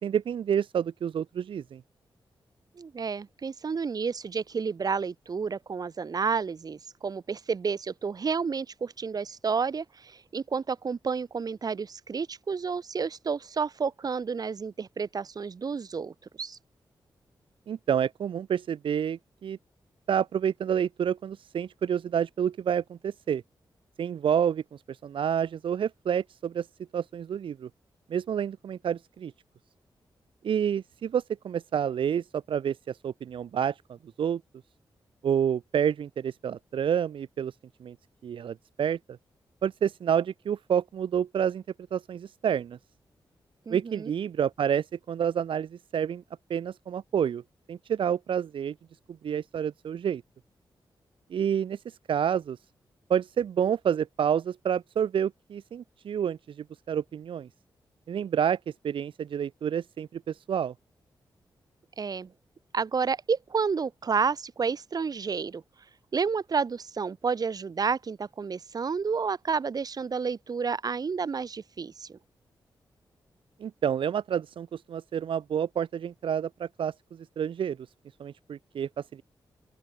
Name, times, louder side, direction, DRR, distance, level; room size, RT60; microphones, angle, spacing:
voice 1, 0.0-1.8 17.7-19.6 20.1-23.4 24.0-26.7 26.9-27.7 28.1-29.3 30.4-33.7 34.2-34.4 35.2-37.5 37.8-38.0 38.2-39.0 39.6-41.6 41.9-42.8 43.7-46.2 46.5-47.4 47.7-48.7 49.2-50.2 51.3-51.8 52.1-52.6 53.1-56.4 56.9-57.5 58.1-58.6 58.8-60.7 73.6-76.9 77.4-77.8 78.2-79.2, right 8 dB, 90° right, 1.8 m, -28 dB
voice 2, 2.8-16.6 43.7-44.1 62.0-62.3 62.7-65.6 66.1-72.2, right 5 dB, 50° right, 5.8 m, -30 dB
open air
wide cardioid pair, 130°, 9 cm